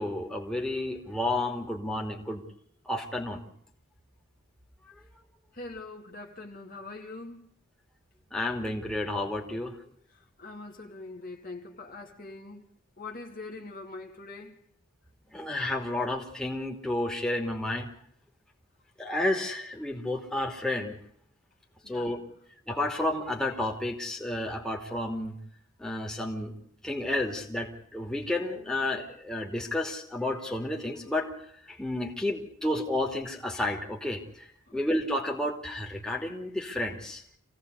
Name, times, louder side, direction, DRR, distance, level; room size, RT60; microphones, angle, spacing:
voice 1, 0.0-2.4 2.9-3.4 8.3-9.7 15.3-17.9 19.0-21.0 21.9-22.2 22.7-25.4 25.8-26.6 26.8-31.3 31.7-37.2, left 1 dB, 5° left, 2.7 m, -31 dB
voice 2, 5.5-7.5 10.1-12.6 13.0-14.6 21.8-22.1 34.7-34.8, left 3 dB, 40° left, 2.2 m, -43 dB
26.0 x 17.5 x 8.3 m
head